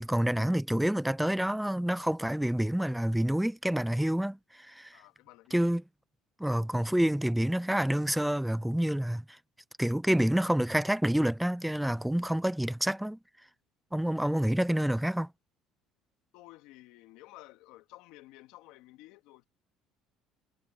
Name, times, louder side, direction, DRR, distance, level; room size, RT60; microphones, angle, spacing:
voice 1, 0.0-5.0 5.5-5.8 6.4-9.4 9.8-13.2 13.9-15.3, right 1 dB, 5° right, 0.4 m, -28 dB
voice 2, 4.9-5.6 14.1-14.2 16.3-19.4, left 18 dB, 75° left, 2.2 m, -53 dB
supercardioid pair, 90°, 0 cm